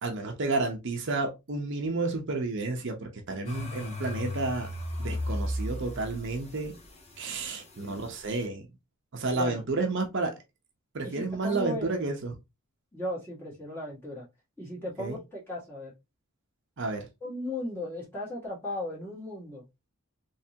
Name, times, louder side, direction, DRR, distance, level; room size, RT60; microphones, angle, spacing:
voice 1, 0.0-4.7 5.0-6.7 7.2-8.7 9.1-10.4 10.9-12.3 15.0-15.2 16.8-17.1, right 3 dB, 55° right, 0.7 m, -31 dB
sound 1, 3.5-8.4, left 1 dB, 30° left, 0.9 m, -35 dB
voice 2, 11.0-11.9 12.9-14.3 14.6-15.9 17.2-19.6, left 1 dB, 10° left, 1.8 m, -36 dB
3.4 x 3.2 x 2.8 m
head